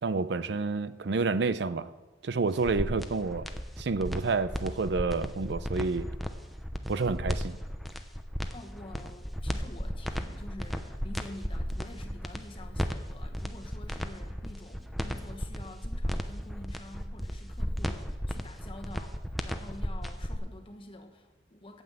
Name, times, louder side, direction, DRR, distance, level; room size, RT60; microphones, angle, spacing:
voice 1, 0.0-1.9 2.2-3.5 3.8-6.1 6.9-7.6, right 4 dB, 65° right, 0.5 m, -29 dB
sound 1, 2.5-20.4, equal, ahead, 0.6 m, -34 dB
voice 2, 8.5-21.8, left 1 dB, 30° left, 1.2 m, -48 dB
9.1 x 8.0 x 7.6 m
head